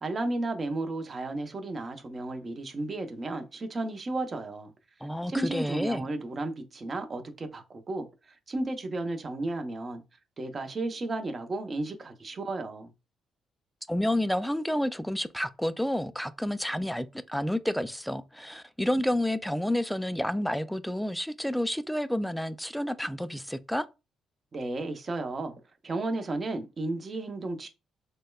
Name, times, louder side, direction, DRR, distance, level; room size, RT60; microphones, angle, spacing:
voice 1, 0.0-4.7 5.3-10.0 10.4-12.9 24.5-25.5 25.8-27.7, right 2 dB, 40° right, 0.8 m, -33 dB
voice 2, 5.0-6.0 13.9-23.9, left 1 dB, ahead, 0.4 m, -30 dB
6.3 x 2.2 x 2.3 m
cardioid pair, 75°, 0 cm